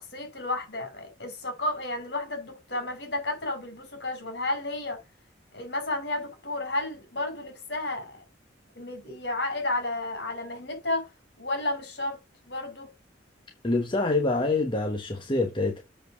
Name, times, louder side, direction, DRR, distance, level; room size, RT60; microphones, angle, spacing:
voice 1, 0.0-5.0 5.5-8.2 8.7-11.1 11.4-12.2 12.4-12.9, left 2 dB, 70° left, 4.9 m, -32 dB
voice 2, 13.6-15.8, left 2 dB, 30° left, 1.2 m, -26 dB
7.6 x 4.9 x 6.3 m
head